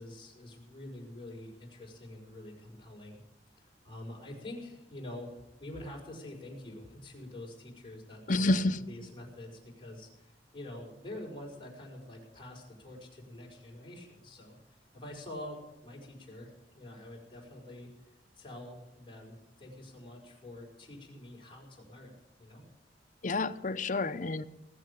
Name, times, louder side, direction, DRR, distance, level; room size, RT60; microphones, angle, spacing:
voice 1, 0.0-3.2 3.6-8.6 8.9-22.1 22.4-22.6, left 1 dB, 30° left, -2 dB, 5.5 m, -46 dB
voice 2, 8.3-8.8 23.2-24.4, left 2 dB, 45° left, 9 dB, 0.7 m, -29 dB
19.5 x 7.6 x 8.5 m, 0.90 s
head